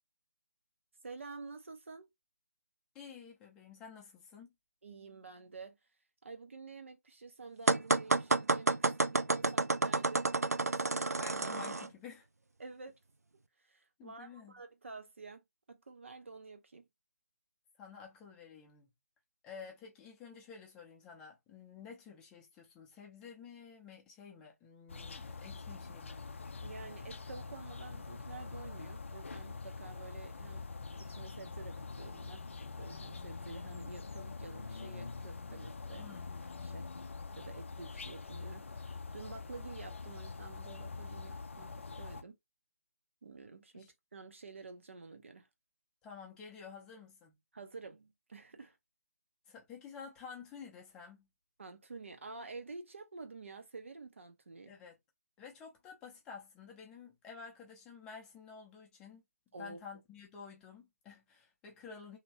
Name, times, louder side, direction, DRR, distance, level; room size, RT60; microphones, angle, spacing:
voice 1, 1.0-2.1 4.8-5.8 6.2-10.3 10.8-11.4 12.6-13.0 13.6-15.4 15.7-16.9 26.6-30.7 31.0-32.4 32.8-36.0 36.6-36.9 37.3-42.4 43.2-45.5 47.5-48.8 51.6-54.8 59.5-59.8, right 4 dB, 50° right, 0.8 m, -49 dB
voice 2, 2.9-4.5 11.2-12.3 14.0-14.6 17.8-18.9 19.4-26.3 35.9-36.3 43.7-43.9 46.0-47.4 49.5-51.3 54.7-55.0 55.4-59.2 59.6-62.2, left 6 dB, 10° left, 0.6 m, -51 dB
sound 1, 7.7-11.9, right 3 dB, 75° right, 0.4 m, -30 dB
sound 2, 24.9-42.2, left 4 dB, 50° left, 0.4 m, -45 dB
3.0 x 2.8 x 2.9 m
figure-of-eight pair, 150°, 8 cm